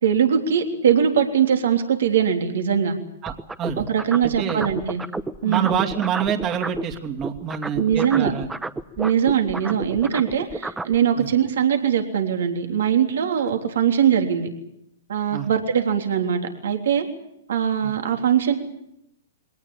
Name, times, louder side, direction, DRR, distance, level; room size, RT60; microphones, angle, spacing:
voice 1, 0.0-3.0 3.8-5.0 5.4-5.7 7.7-8.3 9.0-14.5 15.1-17.1 17.5-18.5, right 8 dB, 70° right, 5 dB, 3.4 m, -21 dB
sound 1, 3.3-6.9 7.2-11.0, right 2 dB, 10° right, 1.0 m, -31 dB
voice 2, 4.4-4.7 5.4-8.5 9.6-9.8 11.2-11.3 15.3-15.5 17.8-17.9, right 8 dB, 30° right, 4 dB, 2.6 m, -27 dB
22.5 x 18.0 x 10.0 m, 0.81 s
hypercardioid pair, 125°, 0 cm